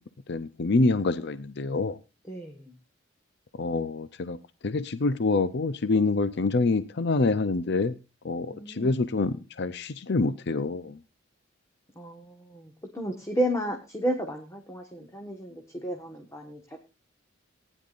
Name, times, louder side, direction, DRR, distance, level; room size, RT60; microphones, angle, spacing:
voice 1, 0.3-2.0 3.6-4.4 4.6-7.9 8.2-11.0, left 3 dB, 55° left, 13 dB, 0.6 m, -26 dB
voice 2, 2.3-2.7 8.5-8.9 12.0-16.8, right 1 dB, 15° left, 3 dB, 1.4 m, -32 dB
18.5 x 10.0 x 2.5 m, 0.27 s
head